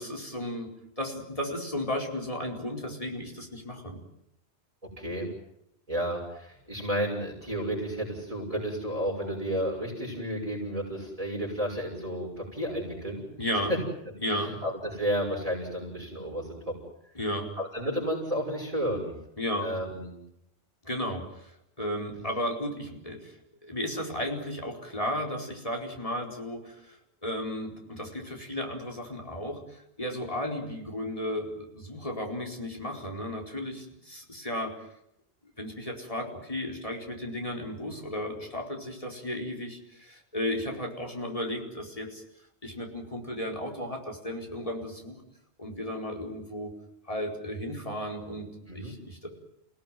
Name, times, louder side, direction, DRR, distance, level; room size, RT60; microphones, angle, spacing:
voice 1, 0.0-4.0 13.4-13.7 14.2-14.6 17.1-17.5 19.4-19.7 20.8-23.3 23.6-34.7 35.6-42.2 42.6-45.2 45.6-46.7 47.1-49.3, left 1 dB, 30° left, 1 dB, 4.7 m, -34 dB
voice 2, 5.0-5.3 5.9-13.2 13.7-13.8 14.3-16.7 17.6-19.1 19.6-20.1 48.7-49.0, equal, 30° right, -3 dB, 6.3 m, -32 dB
29.5 x 17.5 x 9.4 m, 0.81 s
omnidirectional pair, 1.1 m